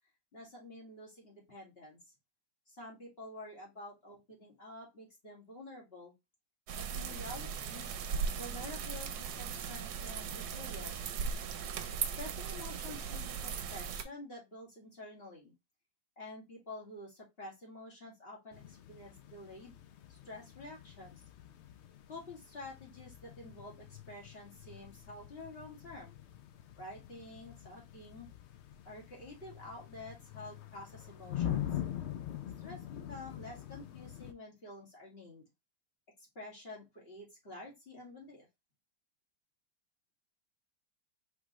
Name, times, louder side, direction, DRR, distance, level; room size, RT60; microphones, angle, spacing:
voice 1, 0.3-2.0 2.7-6.1 6.8-7.9 8.4-11.1 12.2-15.5 16.2-19.7 20.1-21.2 22.1-26.2 26.8-28.3 28.9-31.7 32.6-35.4 36.4-38.5, left 2 dB, 35° left, -4 dB, 2.4 m, -49 dB
sound 1, 6.7-14.0, right 6 dB, 70° right, 1.2 m, -38 dB
sound 2, 18.5-34.3, left 11 dB, 75° left, 0.6 m, -44 dB
4.8 x 3.5 x 3.0 m, 0.21 s
omnidirectional pair, 1.8 m